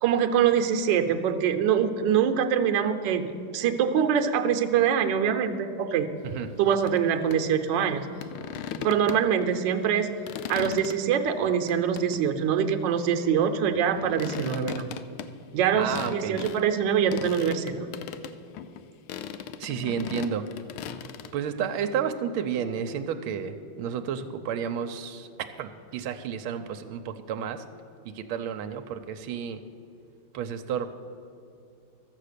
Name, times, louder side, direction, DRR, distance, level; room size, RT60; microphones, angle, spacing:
voice 1, 0.0-6.1 6.6-8.1 8.8-10.1 10.5-14.9 15.5-17.9, right 8 dB, 70° right, 6 dB, 1.3 m, -24 dB
sound 1, 6.9-7.0 7.3-7.4 8.2-9.5 9.9-11.0 11.7-12.3 13.7-16.6 17.1-18.8 19.1-21.3, left 9 dB, 90° left, 1.4 m, -38 dB
voice 2, 15.7-16.4 19.6-20.4 21.3-25.3 25.6-27.6 28.0-29.6 30.3-30.9, right 8 dB, 85° right, 7 dB, 1.4 m, -31 dB
13.0 x 7.6 x 6.6 m, 2.6 s
omnidirectional pair, 2.2 m